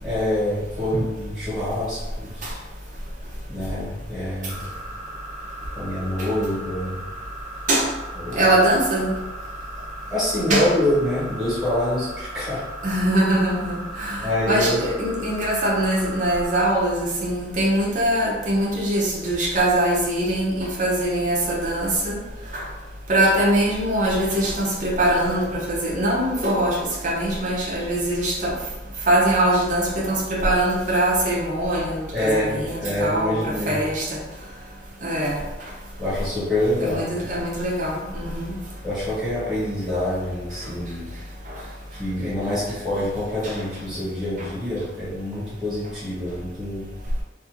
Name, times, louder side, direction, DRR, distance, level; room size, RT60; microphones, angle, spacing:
voice 1, 0.0-2.6 3.5-4.8 5.7-7.0 8.2-8.5 10.1-12.6 14.2-14.8 32.1-33.8 36.0-37.1 38.8-41.1 41.9-46.9, left 1 dB, ahead, -11 dB, 1.4 m, -26 dB
sound 1, 4.5-16.6, right 2 dB, 20° left, 0.5 m, -37 dB
voice 2, 8.3-9.1 10.5-10.7 12.8-22.2 22.5-22.6 23.1-28.6 29.1-34.2 35.0-35.4 36.8-38.6 41.5-41.6 43.4-43.5, right 1 dB, 45° right, -4 dB, 0.6 m, -22 dB
2.7 x 2.7 x 2.5 m, 1.1 s
head